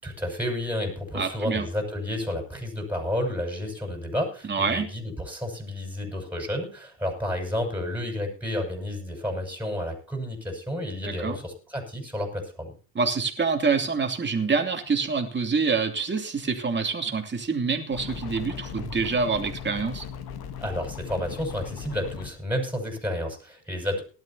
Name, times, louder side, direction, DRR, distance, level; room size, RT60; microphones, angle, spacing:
voice 1, 0.0-12.7 20.6-24.0, left 1 dB, 5° right, 2 dB, 6.0 m, -31 dB
voice 2, 1.1-1.7 4.4-4.9 11.1-11.4 12.9-20.1, right 5 dB, 20° right, 4 dB, 2.9 m, -26 dB
sound 1, 17.9-22.3, left 7 dB, 50° left, 2.1 m, -38 dB
19.0 x 12.5 x 2.9 m, 0.38 s
supercardioid pair, 95°, 49 cm